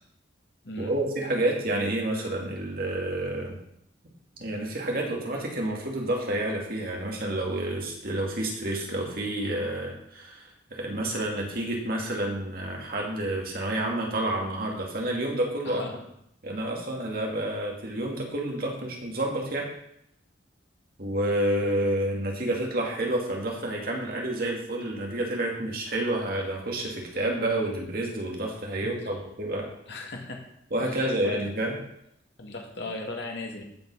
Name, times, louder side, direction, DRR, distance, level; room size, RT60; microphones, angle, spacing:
voice 1, 0.8-3.6 4.4-10.4 10.7-15.8 16.4-19.7 21.0-29.7 30.7-31.8, right 1 dB, 50° right, -1 dB, 2.5 m, -29 dB
voice 2, 15.6-16.0 28.8-28.9 29.9-30.4 30.8-31.5 32.4-33.6, left 2 dB, 65° left, 1 dB, 2.1 m, -37 dB
14.5 x 5.7 x 5.6 m, 0.75 s
head